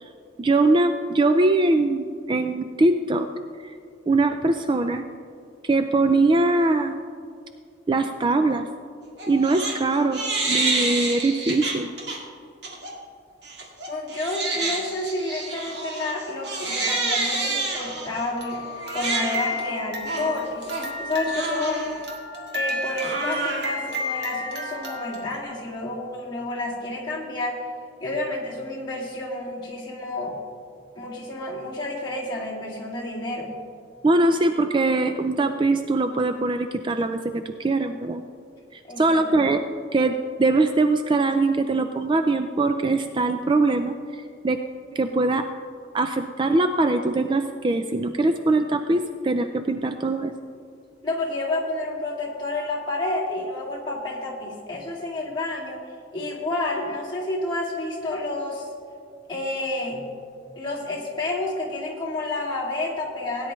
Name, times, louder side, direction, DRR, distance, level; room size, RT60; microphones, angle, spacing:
voice 1, 0.4-3.3 3.6-3.7 4.1-5.0 5.6-7.0 7.9-8.7 9.3-11.9 34.0-38.2 38.7-39.6 39.9-44.6 44.9-45.5 45.9-50.3, right 2 dB, 25° right, 7 dB, 0.4 m, -22 dB
Crying sobbing, 9.2-9.8 10.1-12.2 12.6-12.9 13.4-25.4, right 2 dB, 60° right, 2.1 m, -29 dB
voice 2, 13.9-18.7 18.9-20.7 21.0-21.9 22.5-27.6 28.0-30.4 30.9-33.5 38.9-39.4 51.0-55.8 56.1-58.7 59.3-60.0 60.6-63.5, left 2 dB, 25° left, -5 dB, 2.3 m, -30 dB
17.5 x 9.9 x 3.1 m, 2.3 s
head